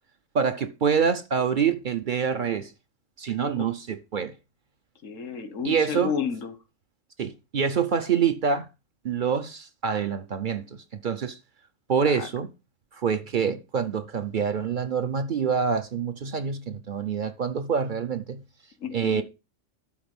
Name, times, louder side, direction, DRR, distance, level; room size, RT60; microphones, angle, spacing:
voice 1, 0.3-2.7 3.2-4.3 5.6-6.1 7.2-8.7 9.0-11.4 11.9-12.5 12.9-18.4 18.9-19.2, right 6 dB, 50° right, 0.6 m, -26 dB
voice 2, 5.0-6.6 12.0-12.3 18.8-19.2, left 7 dB, 90° left, 1.4 m, -31 dB
12.0 x 4.1 x 5.3 m
omnidirectional pair, 1.3 m